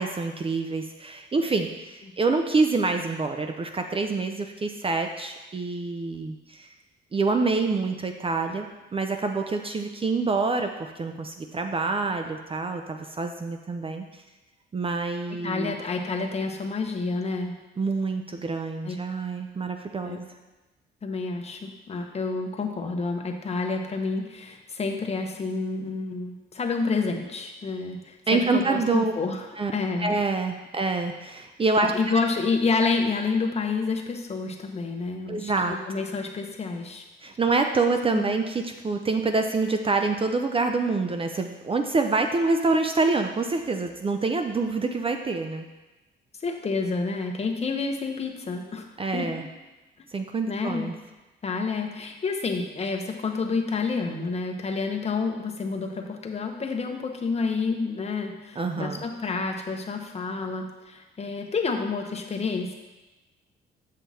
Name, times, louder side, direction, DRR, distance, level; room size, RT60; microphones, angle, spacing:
voice 1, 0.0-6.7 7.1-14.2 14.7-15.7 17.8-20.2 28.3-29.1 29.6-29.7 30.0-32.2 35.3-35.8 37.2-45.7 49.0-49.4 50.1-50.9 58.6-59.0, right 3 dB, 30° right, 5 dB, 0.5 m, -26 dB
voice 2, 15.4-17.5 18.8-19.0 20.0-20.2 21.0-29.4 29.7-30.1 31.9-37.0 38.1-38.3 46.4-48.9 49.1-49.3 50.5-50.9 51.4-62.7, left 4 dB, 30° left, 3 dB, 1.0 m, -29 dB
7.4 x 5.5 x 4.2 m, 1.1 s
cardioid pair, 90°, 20 cm